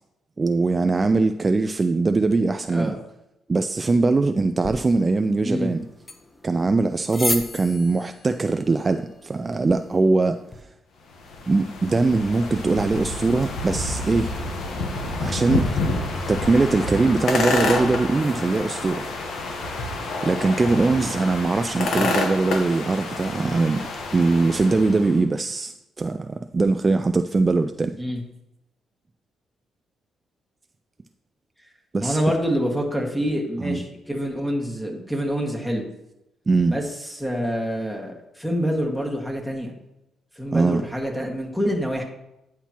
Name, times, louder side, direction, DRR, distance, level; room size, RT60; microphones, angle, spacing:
voice 1, 0.4-3.0 3.5-5.9 6.4-10.4 11.5-14.3 15.2-15.7 16.3-19.1 20.2-23.9 24.1-28.0 31.9-32.2 33.6-33.8 36.5-36.8 40.5-40.8, right 3 dB, 25° right, 9 dB, 0.3 m, -21 dB
sound 1, 4.6-10.6, left 2 dB, 25° left, 0.9 m, -35 dB
sound 2, 11.1-25.2, left 2 dB, 70° left, 1.1 m, -28 dB
voice 2, 32.0-35.9 36.7-39.7 40.4-42.0, equal, 5° left, 1 dB, 1.7 m, -26 dB
10.0 x 5.8 x 2.9 m, 0.89 s
cardioid pair, 90°, 0 cm